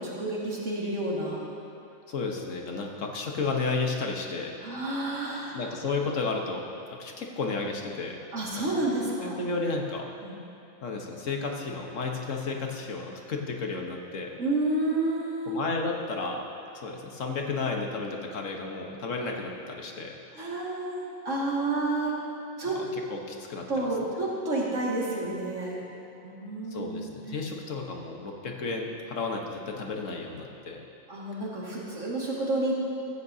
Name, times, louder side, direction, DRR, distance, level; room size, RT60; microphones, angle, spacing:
voice 1, 0.0-1.4 4.6-5.6 8.3-9.4 10.2-10.4 14.4-15.6 20.4-22.2 22.6-22.8 23.7-25.9 26.2-27.2 31.1-32.7, right 2 dB, 85° right, -5 dB, 2.6 m, -30 dB
voice 2, 2.1-4.5 4.8-4.9 5.5-6.6 7.0-8.2 9.4-10.1 10.8-14.3 15.5-16.4 16.7-20.1 22.6-23.9 26.7-30.8, left 4 dB, 85° left, 1 dB, 1.5 m, -32 dB
15.0 x 14.0 x 2.8 m, 2.9 s
omnidirectional pair, 1.3 m